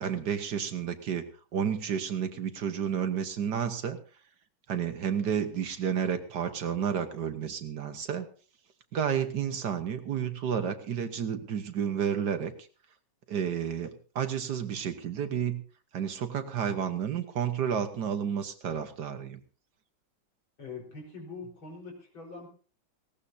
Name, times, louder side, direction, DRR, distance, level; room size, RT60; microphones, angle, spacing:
voice 1, 0.0-1.2 1.5-4.0 4.7-8.3 8.9-12.5 13.3-15.6 15.9-19.4, right 8 dB, 60° right, 8 dB, 1.6 m, -31 dB
voice 2, 20.6-22.5, left 4 dB, 80° left, 0 dB, 5.2 m, -43 dB
19.0 x 17.0 x 2.7 m, 0.38 s
omnidirectional pair, 2.1 m